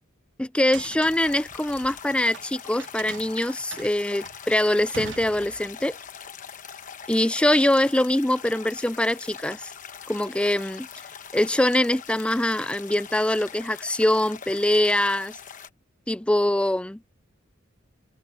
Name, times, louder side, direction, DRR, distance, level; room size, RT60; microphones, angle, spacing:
voice 1, 0.4-6.0 7.1-9.7 10.1-10.9 11.3-15.4 16.1-17.0, left 1 dB, 5° left, 0.4 m, -23 dB
sound 1, 0.6-2.4 2.8-5.9, right 7 dB, 65° right, 0.5 m, -41 dB
sound 2, 1.1-15.7, left 7 dB, 40° left, 1.1 m, -42 dB
head